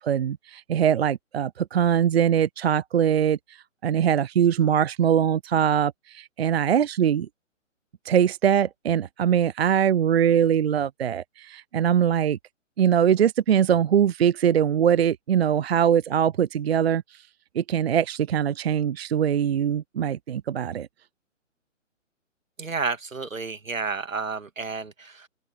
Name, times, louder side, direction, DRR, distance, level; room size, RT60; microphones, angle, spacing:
voice 1, 0.0-3.6 3.8-7.3 8.1-12.4 12.8-17.2 17.5-20.9, right 9 dB, 50° right, 0.6 m, -22 dB
voice 2, 22.6-25.3, right 4 dB, 80° right, 2.3 m, -31 dB
open air
figure-of-eight pair, 135°, 39 cm